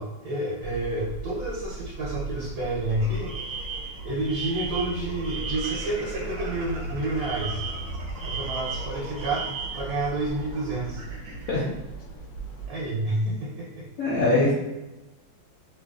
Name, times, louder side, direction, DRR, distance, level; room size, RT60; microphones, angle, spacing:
voice 1, 0.0-3.6 4.0-7.6 8.2-11.0 12.7-13.9, right 2 dB, 65° right, -4 dB, 1.0 m, -29 dB
sound 1, 0.6-12.7, right 1 dB, 85° left, 1.3 m, -37 dB
sound 2, 2.9-11.5, right 2 dB, 85° right, 1.3 m, -43 dB
Alarm, 3.3-6.0 7.2-9.9, right 5 dB, 25° right, 0.6 m, -36 dB
voice 2, 14.0-14.5, left 2 dB, 65° left, -7 dB, 0.8 m, -22 dB
3.0 x 2.8 x 2.3 m, 1.1 s
omnidirectional pair, 2.0 m